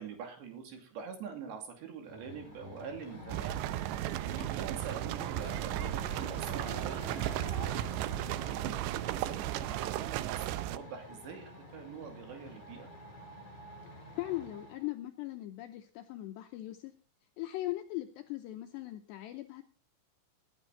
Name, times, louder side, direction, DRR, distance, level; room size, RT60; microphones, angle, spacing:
voice 1, 0.0-7.9 8.2-12.9, right 6 dB, 65° right, 5 dB, 4.5 m, -45 dB
sound 1, 2.1-14.9, left 2 dB, 35° left, 3.3 m, -48 dB
sound 2, 3.3-10.8, right 14 dB, 80° right, 2.6 m, -35 dB
voice 2, 13.8-16.9 17.4-19.6, left 16 dB, 85° left, 6 dB, 2.5 m, -39 dB
19.0 x 9.2 x 4.0 m, 0.36 s
omnidirectional pair, 5.8 m